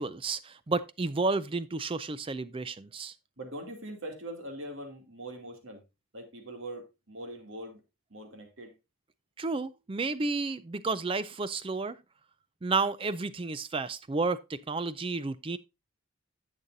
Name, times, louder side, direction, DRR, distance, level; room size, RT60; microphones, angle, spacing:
voice 1, 0.0-3.1 9.4-12.0 12.6-15.6, right 3 dB, 25° right, 0.4 m, -31 dB
voice 2, 3.4-5.8 6.1-7.8 8.1-8.7, right 1 dB, 65° right, 2.6 m, -42 dB
11.0 x 8.0 x 2.6 m
head